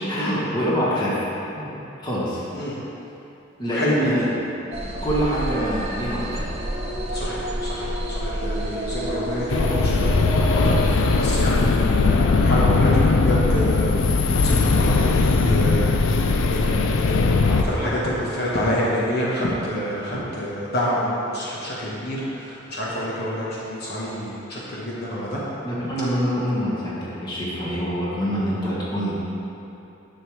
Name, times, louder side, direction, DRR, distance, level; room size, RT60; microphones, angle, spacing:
voice 1, 0.1-1.2 1.5-2.4 3.6-4.2 4.8-6.4 25.6-29.1, equal, 20° left, -7 dB, 1.6 m, -25 dB
voice 2, 3.7-4.1 7.1-25.4, equal, 55° left, -7 dB, 1.2 m, -28 dB
sound 1, 4.7-11.5, right 1 dB, 35° right, 0.8 m, -29 dB
sound 2, 9.5-17.6, left 3 dB, 75° left, 0.4 m, -19 dB
10.5 x 6.4 x 3.3 m, 2.9 s
head